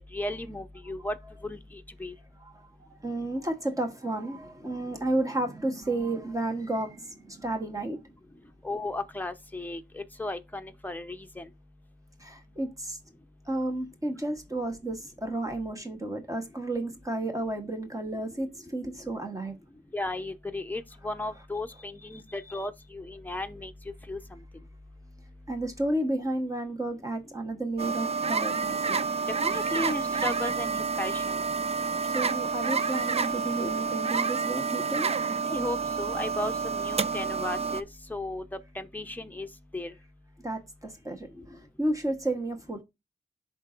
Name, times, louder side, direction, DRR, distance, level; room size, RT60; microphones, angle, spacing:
voice 1, 0.1-1.1 1.4-1.6 2.0-2.1 8.6-11.5 19.9-23.7 24.1-24.2 29.4-31.4 35.5-38.4 38.7-39.5 39.7-39.9, left 2 dB, 10° left, 0.8 m, -35 dB
voice 2, 2.4-8.0 12.2-13.0 13.4-19.6 22.1-22.2 22.5-22.6 25.5-29.0 31.8-35.1 40.4-42.8, right 1 dB, 20° right, 1.2 m, -32 dB
sound 1, 27.8-37.8, right 5 dB, 35° right, 0.4 m, -29 dB
11.0 x 3.9 x 2.6 m
cardioid pair, 80°, 17 cm